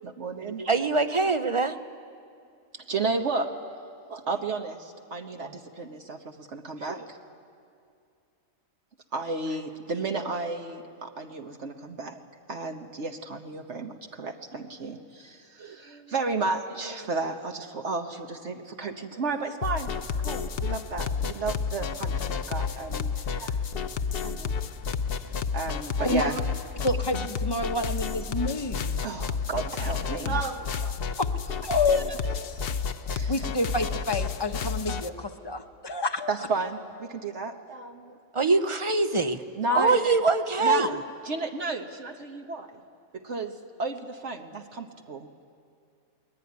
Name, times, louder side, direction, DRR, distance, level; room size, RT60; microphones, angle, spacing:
voice 1, 0.0-0.7 2.7-3.5 4.1-7.2 9.1-12.2 12.5-19.9 20.2-23.6 24.2-24.5 25.5-26.4 29.0-31.0 31.9-32.0 32.5-32.6 33.1-33.5 36.3-38.2 39.6-40.0 40.6-41.0 41.2-42.8 43.1-45.3, right 3 dB, 60° right, 4 dB, 1.4 m, -33 dB
voice 2, 0.6-1.7 38.3-39.4 39.7-41.0, right 3 dB, 35° right, 10 dB, 0.5 m, -23 dB
sound 1, 19.6-35.1, left 6 dB, 50° left, 0.9 m, -31 dB
voice 3, 26.8-29.0 31.2-32.2 33.3-36.3 39.7-39.8, left 2 dB, 20° left, 7 dB, 0.9 m, -28 dB
22.0 x 20.0 x 9.5 m, 2.4 s
omnidirectional pair, 1.4 m